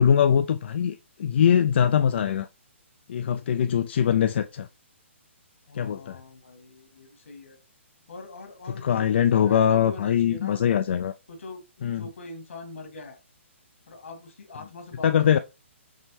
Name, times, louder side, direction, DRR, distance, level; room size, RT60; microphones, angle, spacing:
voice 1, 0.0-2.5 3.1-4.7 5.7-6.2 8.8-11.1 11.8-12.1 15.0-15.4, left 8 dB, 55° left, 0.3 m, -22 dB
voice 2, 5.7-7.6 8.1-10.6 11.3-13.2 13.9-15.4, left 2 dB, 80° left, 1.8 m, -42 dB
5.5 x 3.0 x 3.1 m
hypercardioid pair, 150°, 7 cm